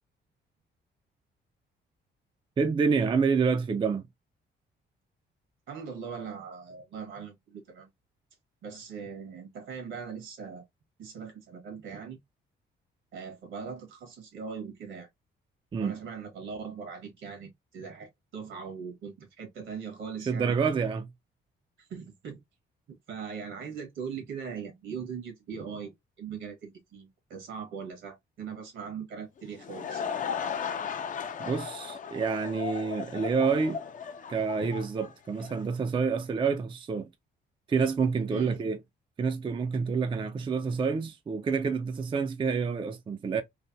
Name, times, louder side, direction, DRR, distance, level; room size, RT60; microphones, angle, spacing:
voice 1, 2.6-4.1 15.7-16.0 20.3-21.1 31.4-33.8 34.3-37.1 37.7-38.8 39.2-43.4, right 5 dB, 25° right, 0.4 m, -28 dB
voice 2, 5.7-7.9 8.6-10.6 11.0-12.2 13.1-15.1 15.8-20.5 21.8-22.4 22.9-30.2 38.3-38.6, right 6 dB, 75° right, 1.4 m, -40 dB
Laughter / Crowd, 29.4-35.7, left 7 dB, 40° left, 0.5 m, -36 dB
3.3 x 2.1 x 2.6 m
cardioid pair, 90°, 20 cm